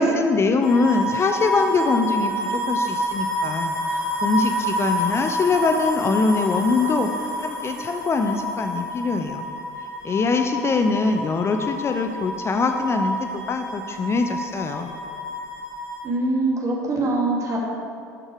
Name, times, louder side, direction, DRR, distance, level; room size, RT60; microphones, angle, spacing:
voice 1, 0.0-7.1 7.4-9.5 10.0-14.9, left 4 dB, 30° left, 6 dB, 0.6 m, -23 dB
sound 1, 0.6-16.1, equal, 85° left, 2.0 m, -28 dB
voice 2, 16.0-17.6, right 2 dB, 35° right, -2 dB, 2.4 m, -23 dB
12.0 x 6.5 x 4.8 m, 2.4 s
figure-of-eight pair, 65°, 9 cm